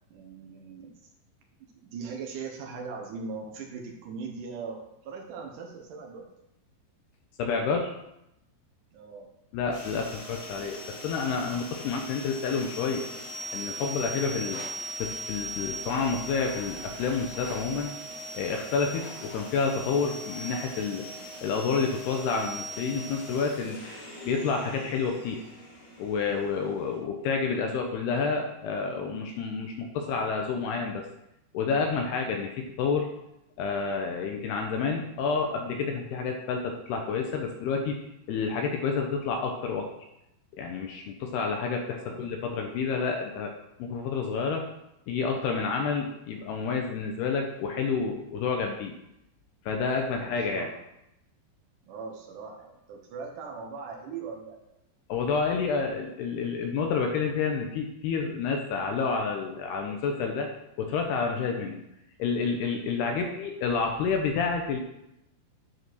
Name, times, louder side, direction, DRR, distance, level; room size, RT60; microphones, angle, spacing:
voice 1, 0.1-0.9 1.6-6.3 8.9-9.3 14.4-14.7 41.9-42.3 50.2-50.7 51.9-54.6 63.0-63.3, right 5 dB, 85° right, 1 dB, 1.8 m, -40 dB
voice 2, 7.4-7.9 9.5-13.1 13.5-14.6 15.0-17.9 18.3-21.0 21.4-25.4 26.0-31.1 31.5-33.1 33.6-38.0 38.3-39.9 40.6-43.5 43.8-44.7 45.1-48.9 49.7-50.7 55.1-60.5 60.8-61.8 62.2-64.8, left 5 dB, 75° left, 2 dB, 2.6 m, -29 dB
sound 1, 9.7-27.0, right 1 dB, 60° left, 4.5 m, -40 dB
9.7 x 4.8 x 6.2 m, 0.86 s
omnidirectional pair, 5.2 m